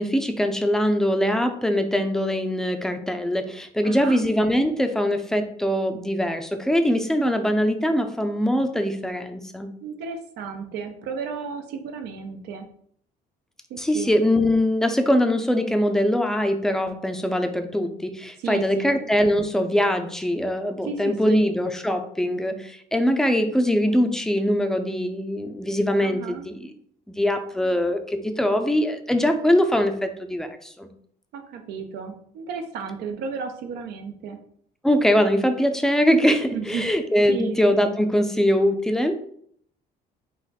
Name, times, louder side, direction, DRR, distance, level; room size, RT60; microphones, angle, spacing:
voice 1, 0.0-9.7 13.8-26.7 27.2-30.9 34.8-39.1, equal, 5° left, 6 dB, 0.5 m, -22 dB
voice 2, 3.8-4.2 9.8-12.7 13.7-14.1 18.4-19.0 20.8-21.4 26.0-26.5 31.3-34.4 36.5-36.9 37.3-37.6, right 6 dB, 80° right, 6 dB, 0.7 m, -33 dB
4.0 x 2.6 x 4.1 m, 0.64 s
cardioid pair, 110°, 17 cm